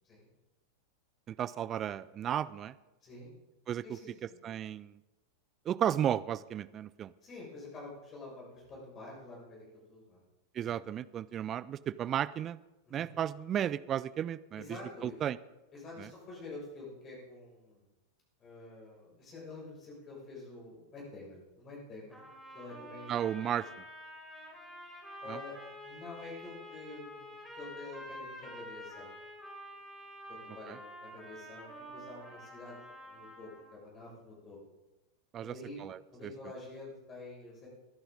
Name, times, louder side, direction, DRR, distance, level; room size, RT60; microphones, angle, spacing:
voice 1, 1.3-2.7 3.7-4.0 4.4-5.0 5.7-7.1 10.5-12.6 12.9-15.4 16.0-16.1 23.1-23.7 25.3-25.4 30.7-30.8 35.3-35.5 35.8-36.3, right 10 dB, 30° right, 18 dB, 0.4 m, -34 dB
voice 2, 3.0-3.3 3.8-4.4 7.2-10.2 10.6-10.8 12.9-13.2 14.6-15.2 15.7-17.9 18.4-22.3 22.5-23.1 25.2-25.6 25.8-29.2 30.3-32.8 33.1-34.6 35.4-35.8 36.1-37.7, left 2 dB, 25° left, -3 dB, 6.3 m, -48 dB
sound 1, 22.1-33.8, equal, 5° left, 4.2 m, -48 dB
21.5 x 11.5 x 3.9 m, 1.1 s
figure-of-eight pair, 90°, 0 cm